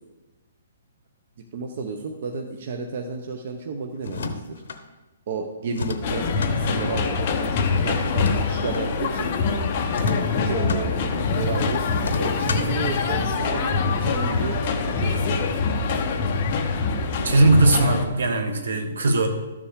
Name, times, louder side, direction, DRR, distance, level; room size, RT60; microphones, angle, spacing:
voice 1, 1.5-4.6 5.3-6.3 6.5-9.3 10.4-14.6 14.9-15.6, right 4 dB, 45° right, 3 dB, 0.8 m, -32 dB
sound 1, 4.0-4.8 5.7-6.6 8.0-8.9 9.9-10.8 12.0-12.8, left 4 dB, 65° left, 1.0 m, -32 dB
sound 2, 6.0-18.1, left 4 dB, 30° left, 0.8 m, -24 dB
voice 2, 17.2-19.3, right 2 dB, 75° right, 5 dB, 1.6 m, -19 dB
13.0 x 7.2 x 3.6 m, 1.1 s
hypercardioid pair, 175°, 0 cm